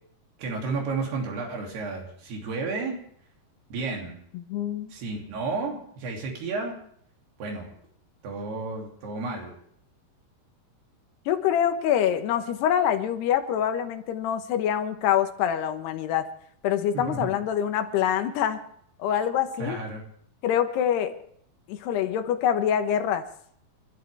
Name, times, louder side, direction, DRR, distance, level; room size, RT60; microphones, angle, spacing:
voice 1, 0.4-3.0 3.7-4.2 4.9-6.8 7.4-7.7 8.2-9.6 16.9-17.4 19.6-20.0, right 3 dB, 75° right, 1 dB, 4.9 m, -32 dB
voice 2, 4.3-4.9 11.3-16.3 16.6-18.6 19.0-19.8 20.4-21.2 21.7-23.3, left 9 dB, 85° left, 8 dB, 3.3 m, -25 dB
29.0 x 12.5 x 3.5 m, 0.65 s
omnidirectional pair, 4.6 m